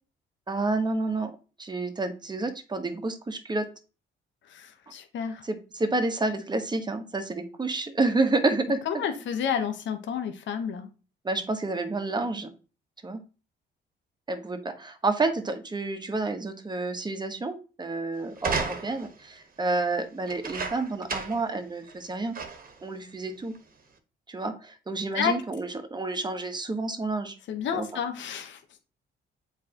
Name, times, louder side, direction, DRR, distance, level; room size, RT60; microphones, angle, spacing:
voice 1, 0.5-1.3 1.6-3.7 5.5-8.8 11.2-12.5 13.0-13.2 14.3-22.4 22.8-23.5 24.3-27.3 27.7-27.9, right 3 dB, 20° right, 7 dB, 1.3 m, -29 dB
voice 2, 4.5-5.5 8.8-10.9 25.1-25.3 27.5-28.6, left 7 dB, 70° left, 7 dB, 1.1 m, -30 dB
sound 1, 18.4-19.2 20.2-21.5 21.9-22.0 22.3-22.8 23.5-23.6, right 5 dB, 45° right, 1.4 m, -33 dB
7.5 x 4.7 x 3.0 m, 0.33 s
cardioid pair, 90°, 20 cm